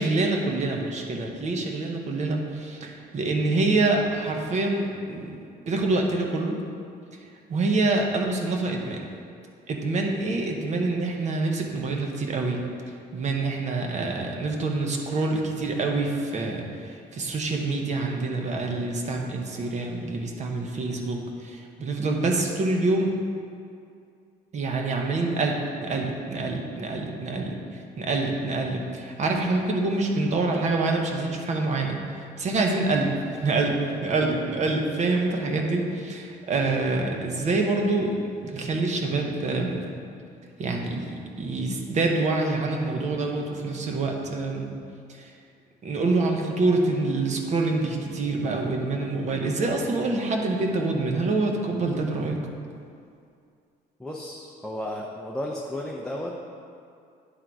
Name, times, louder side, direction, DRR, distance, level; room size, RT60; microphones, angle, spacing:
voice 1, 0.0-5.3 5.7-6.6 7.2-9.0 9.7-23.1 24.5-38.1 38.4-39.9 40.6-44.7 45.1-45.3 45.8-52.4, right 3 dB, 45° right, 2 dB, 1.0 m, -26 dB
voice 2, 54.0-56.4, left 1 dB, 5° left, -3 dB, 0.6 m, -33 dB
10.0 x 3.7 x 4.7 m, 2.4 s
cardioid pair, 110°, 17 cm